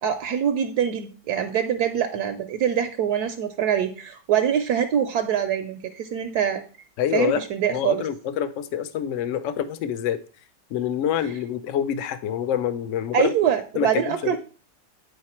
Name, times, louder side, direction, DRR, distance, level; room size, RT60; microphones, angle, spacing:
voice 1, 0.0-6.6 7.1-8.0 13.1-14.4, right 9 dB, 70° right, 1.0 m, -24 dB
voice 2, 7.0-7.4 7.7-10.2 10.7-13.3 13.8-14.4, left 9 dB, 70° left, 0.7 m, -26 dB
9.5 x 4.4 x 4.2 m
omnidirectional pair, 1.9 m